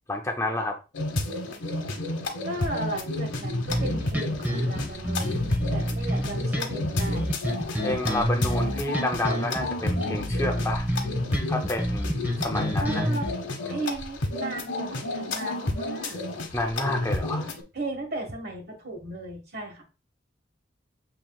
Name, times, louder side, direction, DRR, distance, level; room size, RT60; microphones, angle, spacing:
voice 1, 0.1-0.8 7.7-10.8 11.5-13.1 16.5-17.5, left 2 dB, 15° left, 3 dB, 0.5 m, -30 dB
sound 1, 0.9-17.6, left 2 dB, 75° left, 1.0 m, -31 dB
voice 2, 2.4-7.3 12.8-13.3 13.7-16.2 17.7-19.8, right 2 dB, 55° right, 3 dB, 1.4 m, -35 dB
sound 2, 3.7-13.3, equal, 10° right, 1.0 m, -29 dB
7.5 x 3.0 x 2.3 m, 0.31 s
head